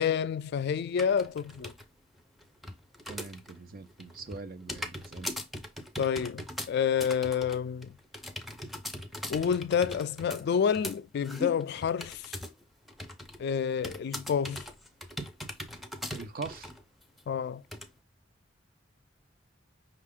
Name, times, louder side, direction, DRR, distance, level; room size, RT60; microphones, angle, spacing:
voice 1, 0.0-1.7 6.0-8.0 9.3-12.2 13.4-14.6 17.3-17.6, left 7 dB, 60° left, 0.3 m, -29 dB
sound 1, 1.0-1.9 2.2-3.6 3.9-12.6 12.9-13.4 13.8-16.8 17.2-17.3 17.7-17.9, left 1 dB, ahead, 0.6 m, -40 dB
voice 2, 3.1-5.3 16.1-16.7, right 4 dB, 50° right, 0.6 m, -42 dB
5.6 x 2.4 x 3.5 m
head